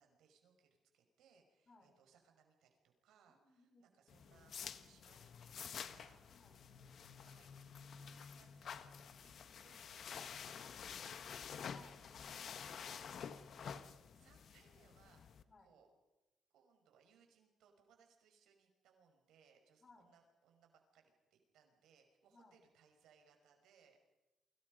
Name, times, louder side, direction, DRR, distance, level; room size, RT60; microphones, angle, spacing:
voice 1, 0.0-6.6 7.2-7.5 7.9-11.2 12.5-12.8 13.5-15.9 16.5-24.0, right 6 dB, 85° right, 4 dB, 5.7 m, -71 dB
voice 2, 3.3-3.9 6.3-6.6 11.6-12.8 15.5-15.7 19.8-20.1 22.3-22.6, left 2 dB, 35° left, 6 dB, 5.3 m, -66 dB
sound 1, 4.1-15.4, left 7 dB, 60° left, 1.6 m, -50 dB
29.0 x 24.5 x 5.4 m, 1.0 s
cardioid pair, 90°, 0 cm